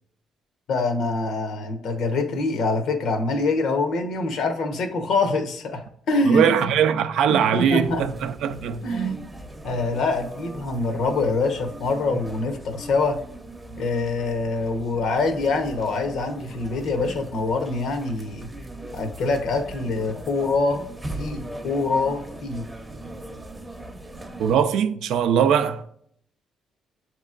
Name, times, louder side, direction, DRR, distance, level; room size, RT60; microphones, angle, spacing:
voice 1, 0.7-6.7 7.3-8.0 8.8-9.2 9.6-13.2 13.8-18.5 18.9-20.8 21.1-22.6, left 3 dB, 75° left, 0.9 m, -25 dB
voice 2, 6.2-9.2 24.4-25.8, right 8 dB, 85° right, 0.4 m, -21 dB
sound 1, 7.8-24.6, right 2 dB, 10° right, 0.7 m, -39 dB
7.2 x 2.9 x 2.4 m
cardioid pair, 90°, 0 cm